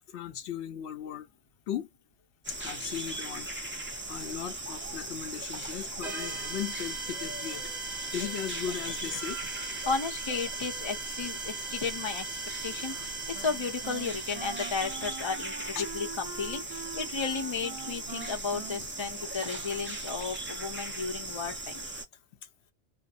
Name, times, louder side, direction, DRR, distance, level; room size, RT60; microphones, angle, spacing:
voice 1, 0.1-1.3 1.7-1.9 2.6-3.5 4.1-9.9 15.8-15.9, left 9 dB, 85° left, 0.9 m, -37 dB
sound 1, 2.4-22.1, right 2 dB, 15° right, 0.5 m, -38 dB
sound 2, 6.0-15.4, right 4 dB, 45° right, 1.2 m, -41 dB
voice 2, 9.8-12.3 12.6-21.8, left 5 dB, 30° left, 0.6 m, -34 dB
Wind instrument woodwind instrument, 12.9-20.3, right 5 dB, 70° right, 1.0 m, -44 dB
2.7 x 2.2 x 2.4 m
omnidirectional pair, 1.1 m